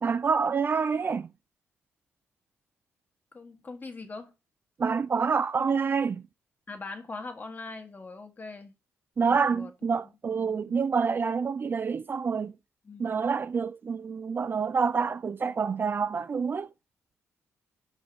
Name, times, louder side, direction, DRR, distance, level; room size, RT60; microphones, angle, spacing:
voice 1, 0.0-1.3 4.8-6.3 9.2-12.6 13.0-16.7, right 5 dB, 40° right, 0.4 m, -27 dB
voice 2, 3.3-4.3 6.7-8.7 9.3-9.7 10.3-10.8 12.9-13.3, left 3 dB, 35° left, 1.5 m, -42 dB
5.4 x 4.8 x 3.9 m
supercardioid pair, 60°, 5 cm